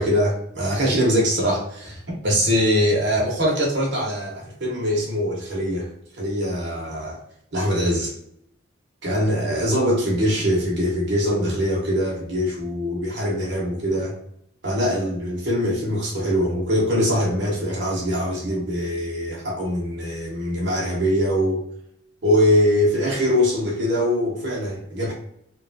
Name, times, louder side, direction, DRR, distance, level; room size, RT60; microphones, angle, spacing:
voice 1, 0.0-5.9 6.2-7.2 7.5-8.1 9.0-14.1 14.6-21.6 22.2-25.1, equal, 55° right, -3 dB, 0.9 m, -22 dB
3.1 x 2.3 x 2.5 m, 0.73 s
head